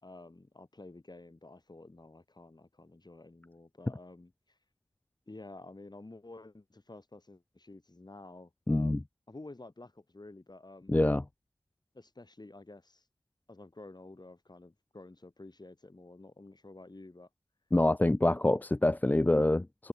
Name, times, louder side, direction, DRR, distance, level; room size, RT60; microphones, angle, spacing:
voice 1, 0.0-4.6 5.3-10.9 11.9-13.0 13.5-17.3, left 2 dB, 35° left, 4.9 m, -51 dB
voice 2, 8.7-9.0 10.9-11.2 17.7-19.9, left 1 dB, 15° left, 0.4 m, -26 dB
wide cardioid pair, 65°, 12 cm